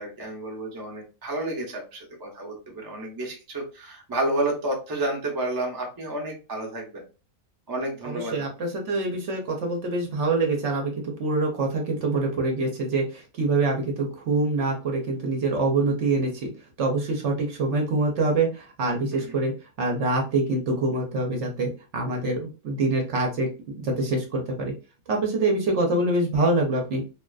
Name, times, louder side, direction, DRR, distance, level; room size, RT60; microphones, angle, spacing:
voice 1, 0.0-7.0 7.7-8.4 19.1-19.3, right 1 dB, 25° right, 0 dB, 0.4 m, -30 dB
voice 2, 8.0-16.5 16.8-19.5 19.8-23.5 23.8-24.7 25.1-27.0, right 2 dB, 65° right, 1 dB, 0.9 m, -25 dB
2.6 x 2.3 x 2.3 m, 0.32 s
omnidirectional pair, 1.5 m